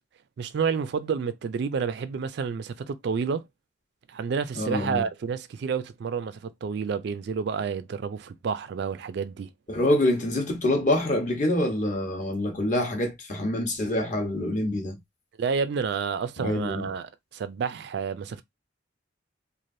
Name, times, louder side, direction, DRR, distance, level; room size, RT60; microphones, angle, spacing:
voice 1, 0.4-3.5 4.1-9.5 15.4-18.4, right 6 dB, 60° right, 0.3 m, -30 dB
voice 2, 4.6-5.0 9.7-15.0 16.4-16.9, left 1 dB, 40° left, 0.9 m, -26 dB
3.2 x 2.4 x 2.6 m
head